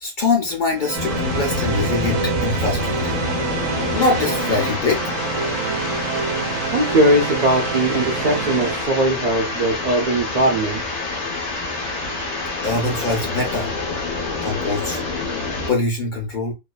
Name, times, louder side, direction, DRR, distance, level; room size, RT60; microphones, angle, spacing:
voice 1, 0.0-3.2 3.9-5.0 12.6-13.7 14.4-15.0 15.7-16.5, left 3 dB, 45° left, 0.9 m, -23 dB
sound 1, 0.8-8.8, right 6 dB, 80° right, 0.9 m, -27 dB
sound 2, 1.0-15.7, left 3 dB, 65° left, 1.2 m, -27 dB
voice 2, 6.7-10.8, right 1 dB, 45° right, 0.6 m, -19 dB
2.9 x 2.1 x 2.2 m
omnidirectional pair, 1.3 m